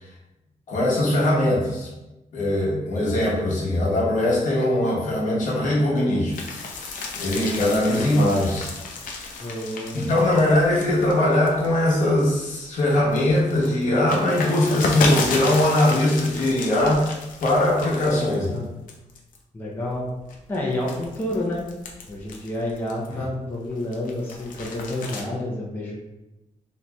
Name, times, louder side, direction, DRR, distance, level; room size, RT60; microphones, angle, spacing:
voice 1, 0.7-1.9 2.3-6.3 7.1-8.7 9.9-18.7 23.1-23.2, left 1 dB, 65° left, -5 dB, 0.9 m, -21 dB
sound 1, 6.3-12.2 12.7-18.6 18.9-19.4 19.9-23.2 23.6-25.2, left 3 dB, 85° left, 0.5 m, -32 dB
voice 2, 9.4-10.3 19.5-20.1 20.5-21.6 22.1-26.0, left 1 dB, 15° left, -4 dB, 0.4 m, -29 dB
3.0 x 2.6 x 2.2 m, 0.98 s
wide cardioid pair, 150°, 14 cm